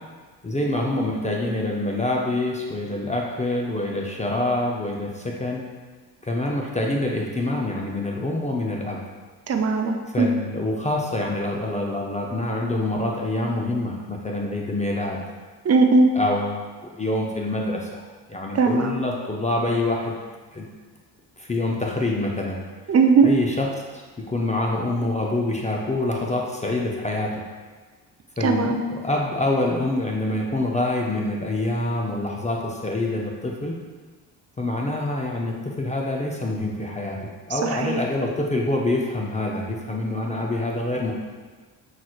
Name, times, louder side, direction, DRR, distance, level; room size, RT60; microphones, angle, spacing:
voice 1, 0.4-5.6 6.2-9.0 10.1-15.2 16.2-18.0 18.3-20.2 20.5-20.7 21.4-22.6 23.2-23.7 23.9-27.4 28.4-33.8 34.6-41.1, left 2 dB, 15° left, -1 dB, 0.5 m, -26 dB
voice 2, 9.5-10.3 15.6-16.1 18.5-18.9 22.9-23.3 28.4-28.8 37.5-38.0, right 4 dB, 35° right, 4 dB, 0.5 m, -19 dB
5.7 x 3.1 x 2.3 m, 1.4 s
supercardioid pair, 60°, 44 cm